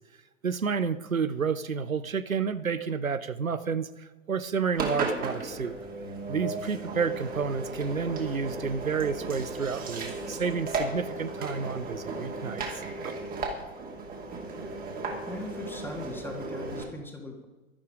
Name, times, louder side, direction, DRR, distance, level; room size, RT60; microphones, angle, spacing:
voice 1, 0.4-5.7 6.3-12.6 13.0-13.1, right 6 dB, 85° right, 14 dB, 0.8 m, -30 dB
Engine, 4.7-16.8, right 3 dB, 20° right, 2.6 m, -35 dB
voice 2, 15.3-17.4, left 1 dB, 5° left, 2 dB, 2.2 m, -39 dB
12.0 x 11.5 x 5.0 m, 1.2 s
figure-of-eight pair, 100°, 40 cm